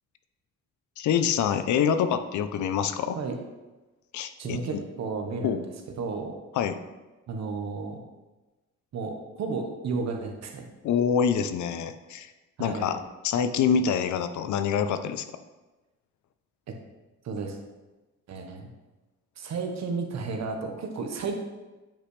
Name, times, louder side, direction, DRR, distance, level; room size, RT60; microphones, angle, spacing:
voice 1, 1.0-3.2 4.1-4.8 5.4-5.6 6.5-6.8 10.8-12.3 12.6-13.0 13.2-15.3, left 7 dB, 70° left, 10 dB, 0.6 m, -26 dB
voice 2, 4.4-5.7 6.0-6.4 7.3-8.0 8.9-10.7 12.6-13.0 16.7-16.8 17.2-17.6 18.3-18.7 19.4-21.4, right 4 dB, 65° right, 3 dB, 1.2 m, -32 dB
9.0 x 5.1 x 3.3 m, 1.1 s
cardioid pair, 90°, 30 cm